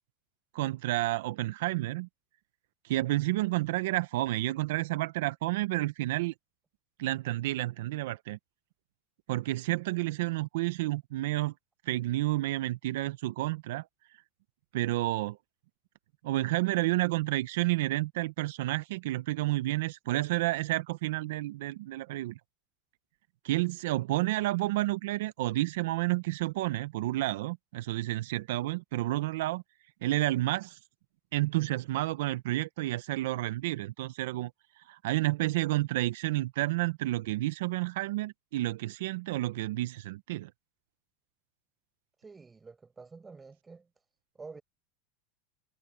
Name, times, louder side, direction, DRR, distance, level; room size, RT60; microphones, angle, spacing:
voice 1, 0.5-2.1 2.8-6.3 7.0-8.4 9.3-11.5 11.8-13.9 14.7-15.4 16.2-22.4 23.4-29.6 30.0-30.8 31.3-34.5 34.8-40.5, right 17 dB, 75° right, 0.6 m, -30 dB
voice 2, 42.2-43.9 44.3-44.6, right 4 dB, 15° right, 5.9 m, -48 dB
supercardioid pair, 130°, 0 cm